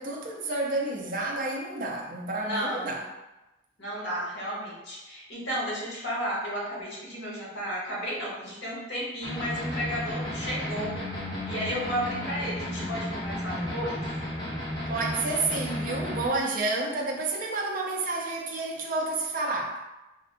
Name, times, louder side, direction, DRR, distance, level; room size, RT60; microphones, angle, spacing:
voice 1, 0.0-3.0 14.9-19.8, right 2 dB, 45° right, 0 dB, 0.4 m, -30 dB
voice 2, 2.4-3.0 3.8-10.9 11.5-14.0, equal, 70° left, -6 dB, 1.2 m, -33 dB
sound 1, 9.2-16.3, left 1 dB, 25° left, 0.5 m, -33 dB
3.4 x 2.2 x 2.5 m, 1.0 s
head